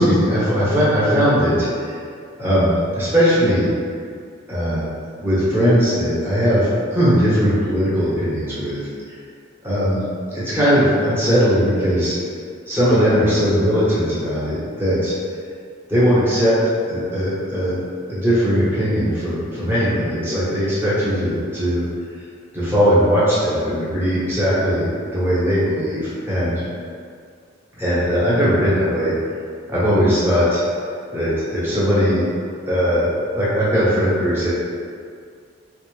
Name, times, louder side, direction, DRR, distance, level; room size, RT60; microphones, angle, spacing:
voice 1, 0.0-1.9 2.4-3.7 4.5-4.9 5.2-8.9 9.6-10.1 10.3-12.2 12.7-15.1 15.9-16.5 16.8-17.8 18.0-21.8 22.5-26.6 27.8-29.1 29.7-30.6 31.1-33.1 33.4-34.5, equal, 10° right, -11 dB, 1.2 m, -19 dB
4.2 x 2.6 x 3.3 m, 2.2 s
head